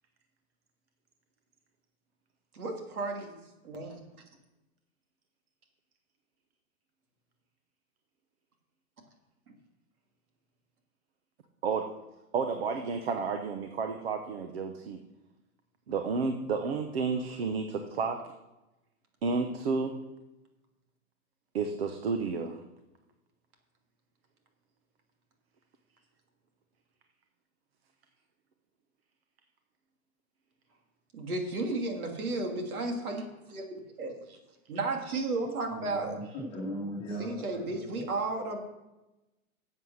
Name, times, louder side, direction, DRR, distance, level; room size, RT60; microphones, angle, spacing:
voice 1, 2.5-4.0 31.1-33.6 34.0-34.4 34.7-36.2 37.2-38.6, right 2 dB, 85° right, 2 dB, 2.9 m, -33 dB
voice 2, 12.3-15.0 15.9-18.2 19.2-20.0 21.5-22.6, right 4 dB, 45° right, 6 dB, 0.9 m, -31 dB
voice 3, 35.7-38.0, equal, 15° left, -4 dB, 1.9 m, -39 dB
11.0 x 7.7 x 6.4 m, 1.0 s
hypercardioid pair, 180°, 42 cm